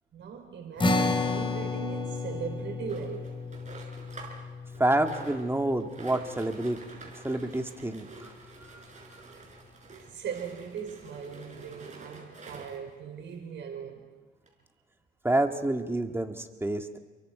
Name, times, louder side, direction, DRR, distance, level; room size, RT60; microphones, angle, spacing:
voice 1, 0.1-3.5 5.6-5.7 9.9-14.1, right 7 dB, 70° right, 3 dB, 4.8 m, -39 dB
sound 1, 0.8-7.4, left 3 dB, 25° left, 2.9 m, -32 dB
sound 2, 2.9-4.4 4.7-12.9 13.6-13.7 13.9-14.0 14.5-14.6, right 3 dB, 35° right, 6.3 m, -48 dB
voice 2, 4.8-6.8 7.0-8.3 15.2-17.0, right 1 dB, 10° right, 5 dB, 2.0 m, -28 dB
29.0 x 23.0 x 5.1 m, 1.3 s
cardioid pair, 90°, 20 cm